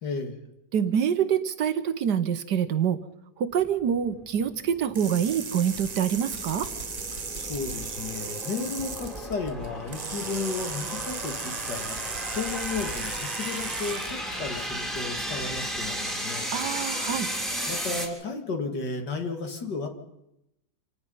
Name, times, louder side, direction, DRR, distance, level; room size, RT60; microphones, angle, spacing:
voice 1, 0.0-0.4 7.1-16.5 17.7-19.9, left 4 dB, 65° left, 5 dB, 2.8 m, -34 dB
voice 2, 0.7-3.0 3.4-6.7 16.5-17.3, right 8 dB, 65° right, 11 dB, 1.5 m, -26 dB
sound 1, 3.5-18.1, equal, ahead, 3.5 m, -35 dB
sound 2, 4.9-9.2 9.9-14.2, right 5 dB, 35° right, 0.7 m, -36 dB
sound 3, 5.8-16.0, right 1 dB, 25° left, 4.0 m, -45 dB
27.0 x 18.5 x 5.6 m, 0.85 s
omnidirectional pair, 2.0 m